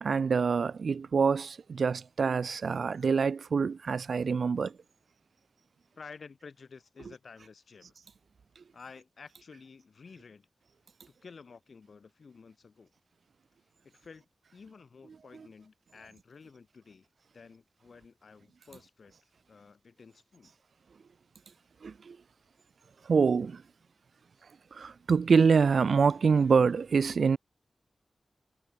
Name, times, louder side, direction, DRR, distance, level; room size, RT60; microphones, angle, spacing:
voice 1, 0.0-4.7 21.8-22.2 23.1-23.6 24.7-27.4, right 5 dB, 80° right, 0.8 m, -25 dB
voice 2, 6.0-8.0 8.7-10.5 11.2-12.9 13.8-17.1 17.3-19.1 19.5-20.5, left 5 dB, 70° left, 6.5 m, -52 dB
wide cardioid pair, 120°, 0 cm